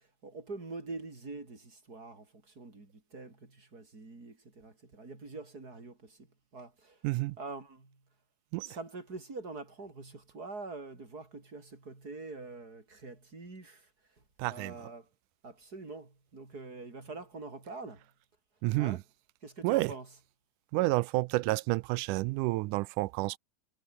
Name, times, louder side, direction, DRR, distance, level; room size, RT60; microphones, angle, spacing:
voice 1, 0.0-8.0 8.6-15.1 15.4-18.1 18.7-19.1 19.4-20.2, right 3 dB, 25° right, 5.3 m, -45 dB
voice 2, 7.0-7.4 8.5-8.7 14.4-14.7 18.6-19.0 19.6-19.9 20.7-23.4, right 20 dB, 80° right, 2.0 m, -29 dB
omnidirectional pair, 3.7 m